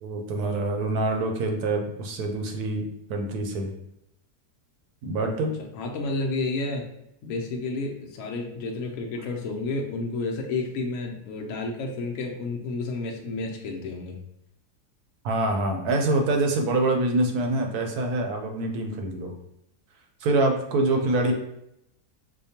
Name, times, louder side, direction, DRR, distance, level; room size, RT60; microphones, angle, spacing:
voice 1, 0.0-2.8 3.1-3.7 5.0-5.5 15.2-19.3 20.2-21.3, right 2 dB, 75° right, 3 dB, 1.1 m, -25 dB
voice 2, 5.7-6.9 7.2-14.2 21.3-21.4, left 3 dB, 65° left, 1 dB, 0.9 m, -31 dB
4.9 x 2.2 x 2.8 m, 0.81 s
omnidirectional pair, 1.7 m